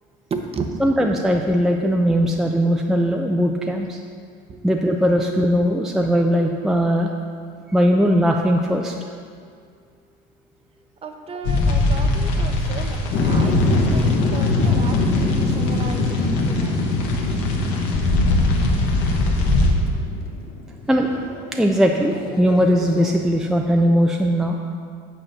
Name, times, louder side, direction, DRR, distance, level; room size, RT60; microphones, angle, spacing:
voice 1, 0.3-0.8 2.0-2.3 4.5-4.6 11.0-16.2 16.5-16.8, right 4 dB, 30° right, 5 dB, 0.8 m, -33 dB
voice 2, 0.8-4.0 4.6-7.1 7.7-8.9 20.9-21.1 21.5-24.6, equal, ahead, 1 dB, 0.4 m, -19 dB
sound 1, 11.4-19.7, left 2 dB, 70° left, 1.4 m, -22 dB
sound 2, 13.1-21.4 21.8-23.1 23.5-23.7, left 2 dB, 50° left, 1.2 m, -22 dB
8.8 x 4.3 x 6.6 m, 2.2 s
supercardioid pair, 110°, 21 cm